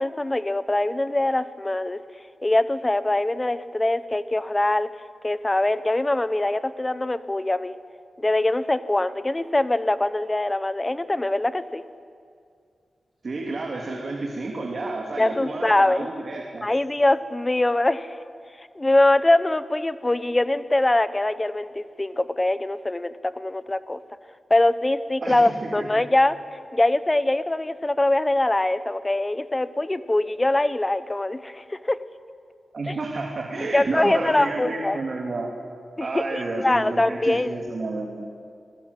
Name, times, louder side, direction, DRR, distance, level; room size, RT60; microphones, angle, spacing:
voice 1, 0.0-2.0 2.4-4.9 5.2-7.8 8.2-11.8 15.2-16.1 16.6-18.2 18.6-24.0 24.5-32.0 32.9-33.0 33.6-35.0 36.0-37.5, left 2 dB, 20° left, 13 dB, 0.9 m, -23 dB
voice 2, 13.2-16.7 25.2-26.1 32.7-35.5 36.0-38.2, right 3 dB, 50° right, 0 dB, 2.8 m, -30 dB
27.5 x 20.0 x 8.3 m, 2.3 s
wide cardioid pair, 125°, 0 cm